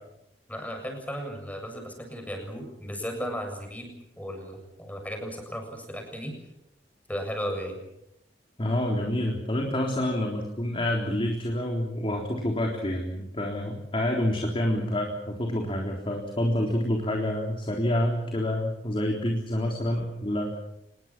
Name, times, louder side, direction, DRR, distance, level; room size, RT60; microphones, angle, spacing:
voice 1, 0.5-6.3 7.1-7.8, equal, 10° left, 4 dB, 7.3 m, -35 dB
voice 2, 8.6-20.6, left 1 dB, 30° left, 1 dB, 3.7 m, -28 dB
26.5 x 21.5 x 7.4 m, 0.83 s
head